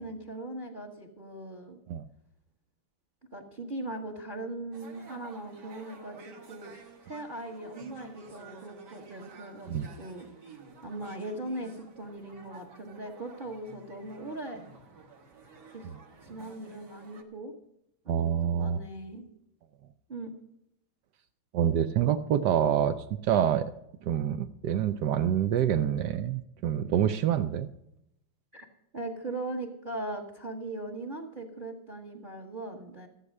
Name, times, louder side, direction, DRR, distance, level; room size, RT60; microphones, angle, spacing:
voice 1, 0.0-1.8 3.3-6.8 7.0-10.3 10.8-14.6 15.7-15.9 16.3-17.5 18.0-19.2 20.1-20.3 28.5-28.7 28.9-33.1, right 2 dB, 30° right, 5 dB, 1.1 m, -39 dB
sound 1, 4.7-17.2, right 5 dB, 50° right, 2.0 m, -51 dB
voice 2, 18.1-18.8 21.5-23.0 23.2-23.7 24.0-27.7, right 9 dB, 75° right, 12 dB, 0.9 m, -26 dB
14.5 x 8.1 x 6.5 m, 0.80 s
omnidirectional pair, 2.4 m